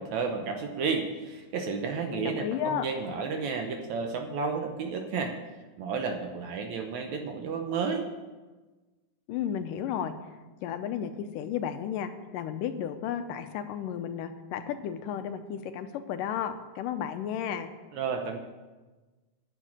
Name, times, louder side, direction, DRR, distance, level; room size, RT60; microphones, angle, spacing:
voice 1, 0.0-5.3 5.8-8.1 17.9-18.4, right 5 dB, 70° right, 4 dB, 1.9 m, -32 dB
voice 2, 2.1-2.9 9.3-10.1 10.6-17.7, left 9 dB, 80° left, 9 dB, 2.2 m, -33 dB
10.0 x 7.4 x 8.6 m, 1.2 s
omnidirectional pair, 4.0 m